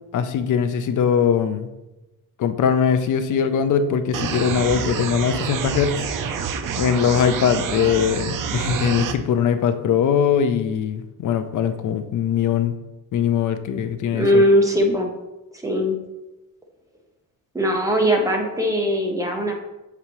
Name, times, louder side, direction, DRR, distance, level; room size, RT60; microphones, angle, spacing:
voice 1, 0.1-1.7 2.4-6.0 6.8-12.7 13.1-14.4, left 7 dB, 60° left, 10 dB, 0.5 m, -21 dB
sound 1, 4.1-9.1, right 6 dB, 65° right, 0.5 m, -27 dB
voice 2, 14.1-15.1 15.6-16.0 17.5-19.5, equal, 10° right, 1 dB, 0.6 m, -19 dB
6.8 x 4.7 x 2.9 m, 1.0 s
wide cardioid pair, 180°, 35 cm